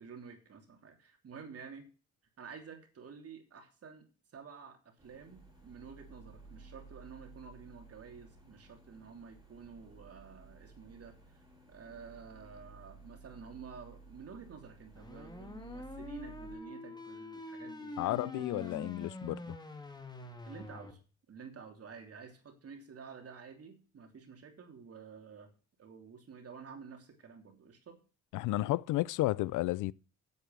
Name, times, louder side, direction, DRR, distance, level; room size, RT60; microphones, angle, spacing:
voice 1, 0.0-1.9 2.4-4.1 4.3-11.4 11.7-18.8 20.5-21.0 21.3-25.5 25.8-28.0, right 6 dB, 50° right, 3.1 m, -50 dB
sound 1, 5.0-16.6, right 3 dB, 15° right, 5.9 m, -55 dB
sound 2, 14.9-20.9, left 2 dB, 15° left, 2.2 m, -45 dB
voice 2, 18.0-19.4 28.3-29.9, left 17 dB, 85° left, 0.5 m, -32 dB
8.4 x 8.2 x 6.4 m
cardioid pair, 90°, 30 cm